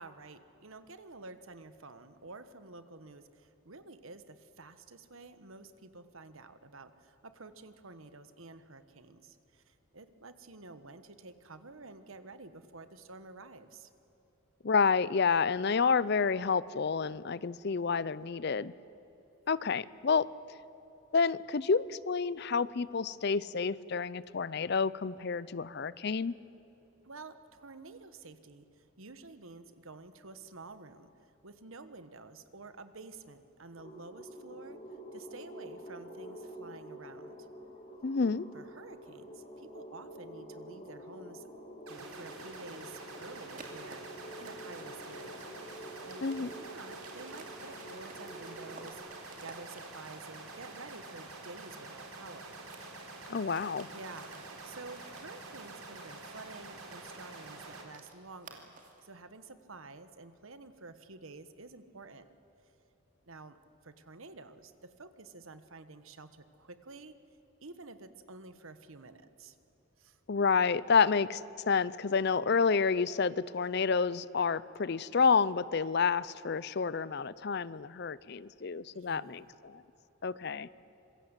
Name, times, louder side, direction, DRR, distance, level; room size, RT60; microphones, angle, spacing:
voice 1, 0.0-13.9 27.0-34.8 35.1-37.5 38.5-41.5 41.9-45.5 46.0-49.0 49.4-52.5 53.9-62.3 63.2-63.6 63.8-67.2 67.6-69.6 70.0-70.2 78.9-79.6, right 3 dB, 70° right, 11 dB, 1.3 m, -50 dB
voice 2, 14.6-18.7 19.5-20.3 21.1-26.4 38.0-38.5 46.2-46.5 53.3-53.9 70.3-79.8 80.2-80.7, left 5 dB, 50° left, 19 dB, 0.5 m, -29 dB
sound 1, 33.8-48.9, equal, 30° left, 2.2 m, -48 dB
sound 2, 41.9-57.8, right 3 dB, 85° right, 4.1 m, -47 dB
sound 3, 43.5-51.9 52.2-59.1, right 3 dB, 35° right, 2.7 m, -56 dB
26.0 x 22.0 x 8.2 m, 3.0 s
head